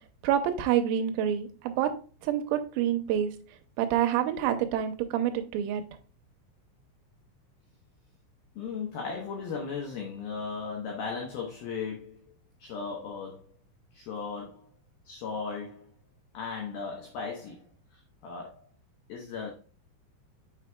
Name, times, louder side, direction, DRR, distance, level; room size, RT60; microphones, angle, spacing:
voice 1, 0.2-1.9 2.2-3.3 3.8-5.8, right 10 dB, 85° right, 3.5 m, -27 dB
voice 2, 8.6-12.2 12.6-13.5 13.9-14.7 15.1-15.9 16.3-17.6 17.9-18.6 19.1-19.5, left 5 dB, 85° left, 2.1 m, -36 dB
7.4 x 6.0 x 2.2 m
omnidirectional pair, 5.9 m